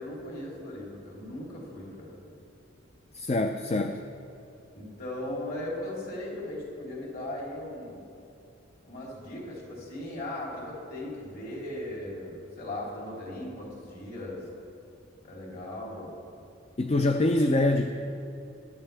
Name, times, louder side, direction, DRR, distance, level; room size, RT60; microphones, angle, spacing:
voice 1, 0.0-2.2 4.7-8.1 8.8-14.4 15.2-16.2, left 1 dB, 45° left, -4 dB, 3.4 m, -38 dB
voice 2, 3.1-4.1 16.8-17.9, left 2 dB, 30° left, 6 dB, 0.5 m, -25 dB
21.5 x 11.0 x 3.4 m, 2.6 s
head